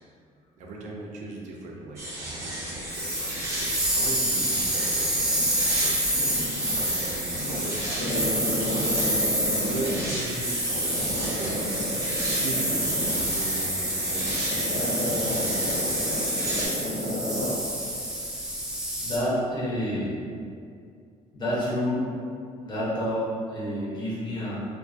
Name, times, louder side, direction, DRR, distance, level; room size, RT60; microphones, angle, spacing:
voice 1, 0.6-6.1 6.5-9.1 9.6-11.7 12.4-15.7, right 2 dB, 65° right, -2 dB, 0.5 m, -38 dB
sound 1, 2.0-16.7, right 1 dB, 20° right, 0.8 m, -34 dB
sound 2, 2.9-19.2, right 1 dB, 5° right, 0.3 m, -28 dB
Growling, 5.2-6.9 7.3-10.3 10.8-17.6 17.9-18.0, left 1 dB, 75° left, 0.8 m, -32 dB
voice 2, 19.0-20.2 21.3-22.1 22.6-24.6, equal, 35° left, -9 dB, 0.9 m, -28 dB
2.3 x 2.3 x 2.4 m, 2.3 s
cardioid pair, 120°, 13 cm